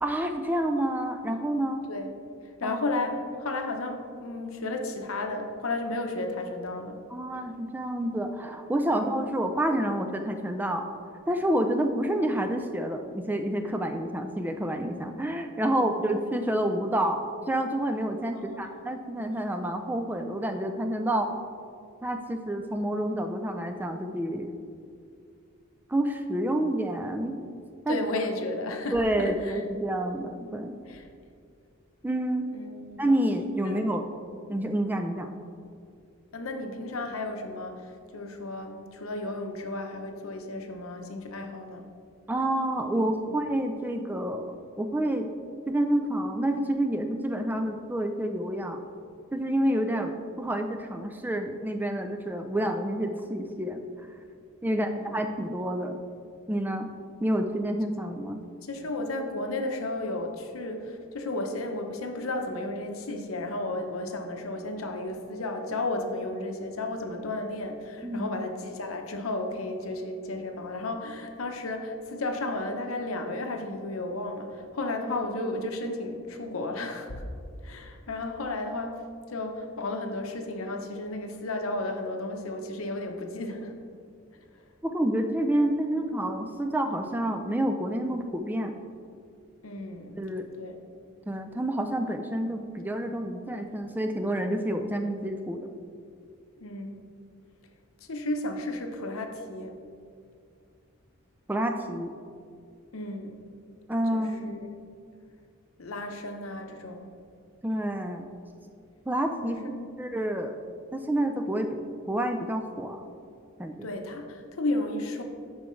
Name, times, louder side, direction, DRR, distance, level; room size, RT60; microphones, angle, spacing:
voice 1, 0.0-1.8 2.6-2.8 7.1-10.8 11.3-21.3 22.0-24.5 25.9-27.4 27.8-28.0 28.9-30.8 32.0-32.5 33.0-34.0 34.5-35.3 42.3-45.3 45.7-48.8 49.3-53.8 54.6-56.0 56.5-56.9 57.2-58.4 68.0-68.3 84.8-88.7 90.2-90.5 91.3-95.7 101.5-102.1 103.9-104.6 107.6-108.3 109.1-110.6 110.9-111.8 112.1-113.1 113.6-113.9, right 1 dB, 10° right, 5 dB, 0.3 m, -28 dB
voice 2, 2.6-7.0 8.9-9.1 15.7-15.8 18.3-18.7 27.9-29.6 30.9-31.1 32.5-33.0 33.6-33.8 36.3-41.9 42.9-43.4 54.6-55.2 58.6-77.2 77.6-83.8 89.6-90.1 90.6-90.8 96.6-97.0 98.1-99.8 102.9-103.4 104.1-104.7 105.8-107.1 109.4-110.0 113.8-115.2, left 2 dB, 80° left, 4 dB, 0.8 m, -33 dB
12.0 x 4.8 x 3.2 m, 2.3 s
head